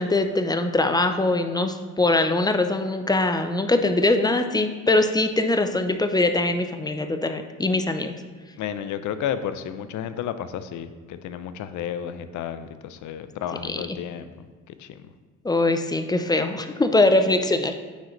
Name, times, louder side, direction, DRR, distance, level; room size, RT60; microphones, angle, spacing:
voice 1, 0.0-8.1 13.6-13.8 15.4-17.7, left 2 dB, 15° left, 7 dB, 0.4 m, -22 dB
voice 2, 8.6-14.3 14.8-14.9, left 9 dB, 75° left, 11 dB, 0.5 m, -32 dB
9.3 x 3.8 x 3.1 m, 1.4 s
cardioid pair, 90°, 30 cm